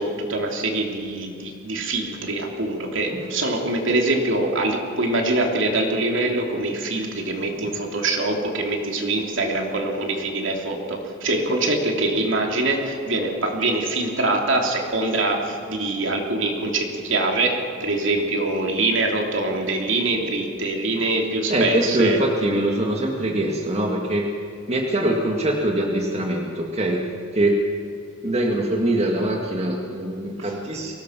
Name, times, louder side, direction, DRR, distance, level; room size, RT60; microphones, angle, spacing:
voice 1, 0.0-22.2 30.4-30.5, right 2 dB, 65° right, 2 dB, 3.1 m, -24 dB
voice 2, 21.5-24.3 24.7-27.0 27.3-27.6 28.2-30.9, right 1 dB, 30° right, 1 dB, 1.8 m, -23 dB
23.5 x 18.5 x 6.0 m, 2.4 s
head